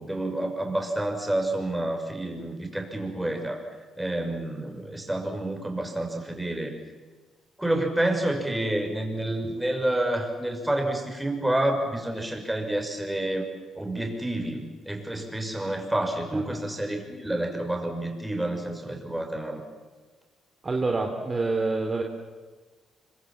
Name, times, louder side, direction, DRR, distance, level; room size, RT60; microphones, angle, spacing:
voice 1, 0.0-6.8 7.6-13.5 13.7-19.6, right 1 dB, 10° right, 3 dB, 6.2 m, -29 dB
voice 2, 20.6-22.0, right 3 dB, 30° right, 2 dB, 3.3 m, -26 dB
25.5 x 25.0 x 7.5 m, 1.4 s
cardioid pair, 90°, 0 cm